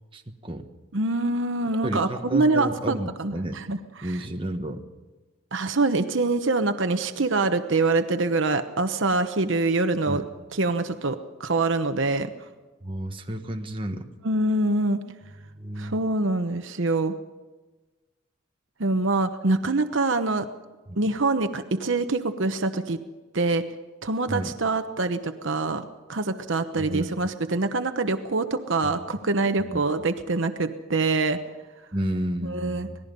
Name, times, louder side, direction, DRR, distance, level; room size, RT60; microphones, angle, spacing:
voice 1, 0.1-0.7 1.8-3.6 4.0-4.8 10.1-10.2 12.8-14.1 15.6-16.0 20.9-21.0 24.3-24.5 26.8-27.3 28.8-28.9 29.7-29.8 31.9-33.0, right 1 dB, 25° right, 4 dB, 1.4 m, -31 dB
voice 2, 0.9-4.2 5.5-10.2 10.5-12.3 14.2-15.0 15.8-17.1 18.8-20.5 21.0-23.0 23.3-23.6 24.0-25.8 26.1-31.4 32.4-32.9, right 3 dB, 60° right, 8 dB, 1.0 m, -25 dB
26.0 x 19.0 x 5.4 m, 1.2 s
head